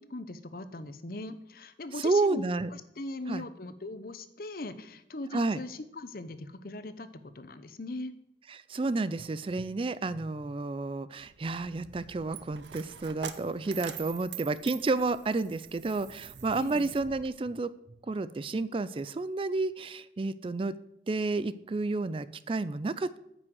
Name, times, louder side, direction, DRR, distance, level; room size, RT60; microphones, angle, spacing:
voice 1, 0.0-2.4 2.7-7.1 7.3-8.1 16.5-16.9, left 2 dB, 55° left, 12 dB, 0.8 m, -40 dB
voice 2, 2.0-2.7 3.3-3.4 5.3-5.6 8.5-17.7 18.1-20.7 21.1-23.2, right 3 dB, 30° right, 16 dB, 0.4 m, -31 dB
Coin (dropping), 11.2-17.3, right 8 dB, 85° right, 0.8 m, -45 dB
9.3 x 6.1 x 7.8 m, 0.79 s
head